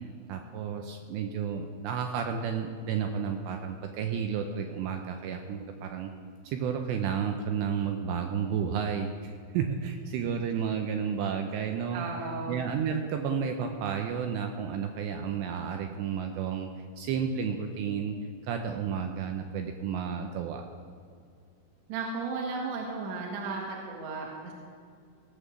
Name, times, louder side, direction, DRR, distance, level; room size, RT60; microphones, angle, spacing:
voice 1, 0.3-6.1 6.4-12.1 12.5-16.7 17.0-18.2 18.5-20.6, right 7 dB, 90° right, 5 dB, 2.5 m, -32 dB
voice 2, 11.9-12.6 21.9-24.5, right 4 dB, 65° right, -1 dB, 3.2 m, -34 dB
18.5 x 7.3 x 6.3 m, 2.3 s
omnidirectional pair, 5.8 m